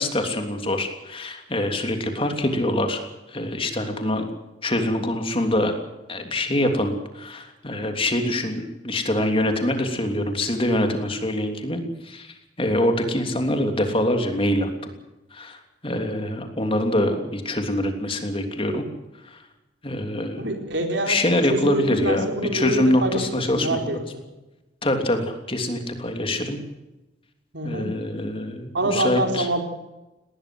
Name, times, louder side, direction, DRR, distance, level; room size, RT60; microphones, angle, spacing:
voice 1, 0.0-3.0 3.3-4.3 4.6-5.7 6.1-14.7 15.3-18.8 19.2-19.4 19.8-20.5 21.1-23.8 24.8-26.6 27.6-29.5, left 1 dB, 30° left, 5 dB, 3.2 m, -24 dB
voice 2, 20.4-21.2 21.5-24.0 27.5-27.9 28.7-29.6, right 1 dB, 85° right, 4 dB, 4.4 m, -25 dB
20.0 x 18.5 x 7.9 m, 1.0 s
head